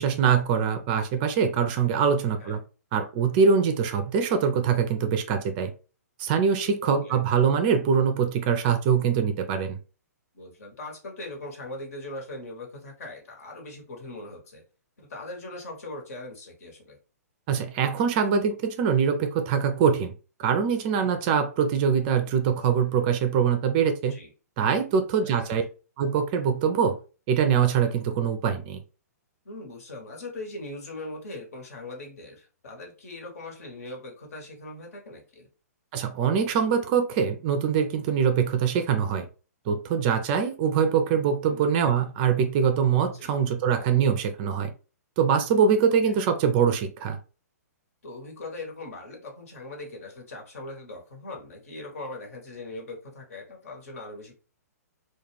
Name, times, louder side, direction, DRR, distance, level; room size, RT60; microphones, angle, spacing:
voice 1, 0.0-2.6 2.9-5.7 6.2-9.8 17.5-20.1 20.4-24.2 24.6-25.6 26.0-27.0 27.3-28.8 35.9-39.3 39.7-44.7 45.2-47.2, right 7 dB, 35° right, 0.4 m, -23 dB
voice 2, 6.9-7.2 10.3-14.6 15.0-17.0 21.0-21.2 24.1-24.3 25.1-25.5 29.4-35.5 41.4-41.6 43.1-43.3 46.0-46.2 48.0-54.3, left 2 dB, 60° left, 1.1 m, -40 dB
2.3 x 2.3 x 3.2 m
figure-of-eight pair, 125°, 9 cm